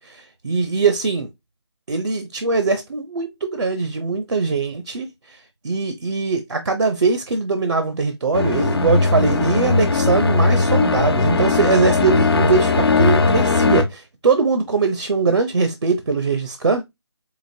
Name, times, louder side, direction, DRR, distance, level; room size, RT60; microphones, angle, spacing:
voice 1, 0.1-1.3 1.9-5.4 5.6-16.8, right 4 dB, 75° right, 0.8 m, -21 dB
sound 1, 8.3-13.8, left 3 dB, 60° left, 0.8 m, -18 dB
5.0 x 2.9 x 2.6 m
hypercardioid pair, 175°, 14 cm